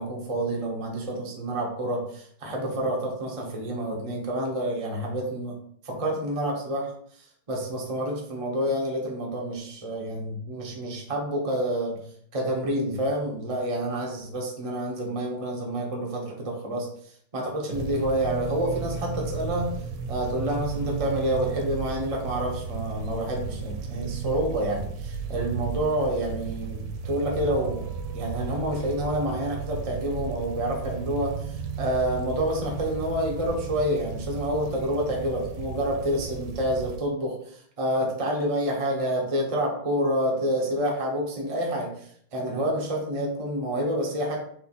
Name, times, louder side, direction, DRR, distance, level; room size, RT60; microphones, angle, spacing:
voice 1, 0.0-5.6 5.8-6.9 7.2-12.0 12.3-16.9 17.3-19.7 20.1-44.4, right 1 dB, 45° right, -1 dB, 0.4 m, -28 dB
sound 1, 17.7-37.0, right 6 dB, 75° right, 1.1 m, -34 dB
3.3 x 3.0 x 4.0 m, 0.63 s
omnidirectional pair, 2.1 m